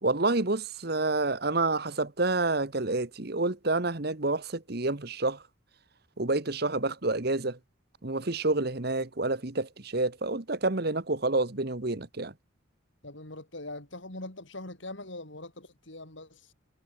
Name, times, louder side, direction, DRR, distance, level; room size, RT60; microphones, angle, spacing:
voice 1, 0.0-5.4 6.2-7.6 8.0-12.3, right 2 dB, 50° right, 1.4 m, -28 dB
voice 2, 13.0-16.5, left 2 dB, 65° left, 4.0 m, -42 dB
head